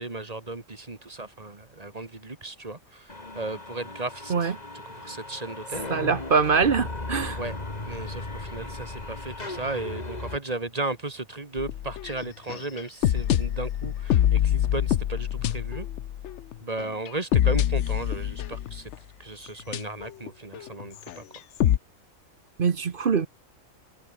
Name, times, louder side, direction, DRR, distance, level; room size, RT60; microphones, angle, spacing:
voice 1, 0.0-4.5 5.0-5.9 7.4-7.6 7.8-15.9 16.6-18.9 19.2-21.2, right 2 dB, 30° right, 1.9 m, -35 dB
sound 1, 3.1-10.4, left 2 dB, 30° left, 2.5 m, -37 dB
voice 2, 5.9-7.4 22.6-23.3, right 5 dB, 45° right, 1.0 m, -23 dB
sound 2, 11.6-19.0 19.7-20.3 20.5-21.8, left 11 dB, 65° left, 0.9 m, -25 dB
omnidirectional pair, 1.4 m